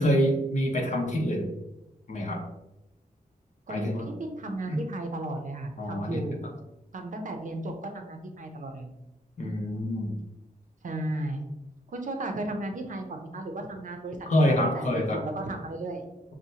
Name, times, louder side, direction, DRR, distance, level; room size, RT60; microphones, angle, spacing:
voice 1, 0.0-1.5 2.1-2.4 3.7-4.0 4.7-4.8 5.8-6.2 9.4-10.1 14.3-15.2, equal, 50° left, 0 dB, 0.9 m, -26 dB
voice 2, 3.7-6.6 6.9-8.9 10.8-11.4 11.9-16.0, right 2 dB, 55° right, 4 dB, 0.6 m, -35 dB
6.2 x 2.2 x 2.7 m, 0.90 s
wide cardioid pair, 165°, 16 cm